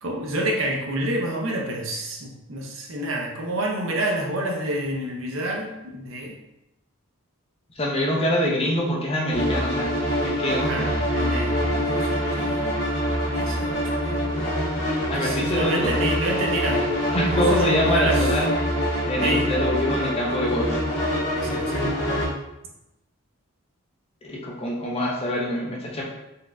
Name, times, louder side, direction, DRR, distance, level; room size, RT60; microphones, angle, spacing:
voice 1, 0.0-6.3 10.6-12.7 13.3-14.3 15.2-18.4 19.2-19.5 21.4-21.9, right 1 dB, 65° right, 0 dB, 0.6 m, -29 dB
voice 2, 7.8-9.9 10.2-10.9 15.1-15.9 17.1-18.5 19.1-20.8 24.2-26.0, left 1 dB, 25° left, -2 dB, 0.5 m, -25 dB
sound 1, 9.3-22.3, equal, 80° left, 1.1 m, -25 dB
4.0 x 2.6 x 2.2 m, 0.89 s
head